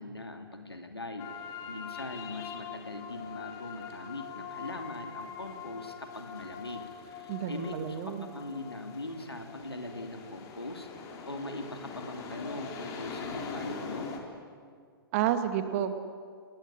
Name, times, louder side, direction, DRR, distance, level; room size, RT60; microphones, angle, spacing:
voice 1, 0.0-14.1, left 2 dB, 80° left, 5 dB, 2.8 m, -41 dB
sound 1, 1.2-14.2, left 5 dB, 25° left, 3.9 m, -42 dB
voice 2, 7.3-8.3 15.1-15.9, right 10 dB, 35° right, 9 dB, 2.1 m, -30 dB
29.5 x 20.0 x 9.9 m, 2.2 s
figure-of-eight pair, 115°, 13 cm